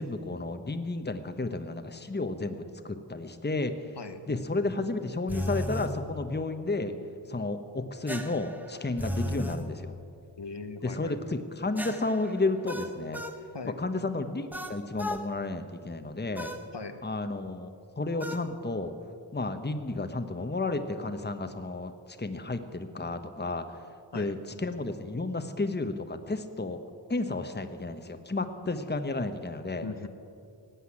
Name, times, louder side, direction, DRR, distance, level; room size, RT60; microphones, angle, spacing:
voice 1, 0.0-3.9 4.3-6.9 7.3-9.9 10.8-13.2 13.6-16.6 17.0-18.9 19.3-23.8 24.1-26.8 27.1-29.8, left 2 dB, 20° left, 8 dB, 1.0 m, -32 dB
sound 1, 5.3-5.9 8.1-9.6 11.8-13.4 14.5-15.3 16.4-16.7 18.2-18.5, equal, 5° right, 1.1 m, -35 dB
voice 2, 10.4-11.3 13.5-13.8 16.7-17.0 24.1-24.4 29.8-30.1, left 4 dB, 65° left, 8 dB, 1.1 m, -39 dB
18.0 x 8.0 x 9.8 m, 2.4 s
wide cardioid pair, 55°, 45 cm